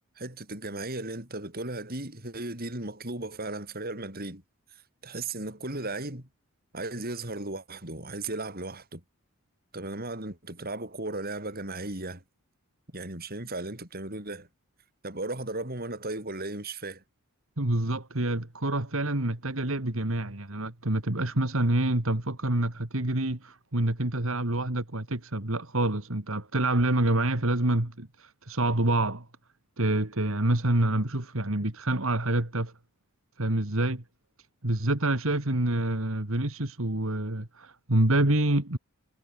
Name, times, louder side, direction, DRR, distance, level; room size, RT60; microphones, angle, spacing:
voice 1, 0.2-4.4 4.7-6.3 6.7-9.0 9.7-12.2 12.9-14.5 15.0-17.0, right 2 dB, 45° right, 7.5 m, -36 dB
voice 2, 17.6-29.3 29.8-32.7 33.4-34.0 34.6-38.8, right 1 dB, 65° right, 2.5 m, -27 dB
head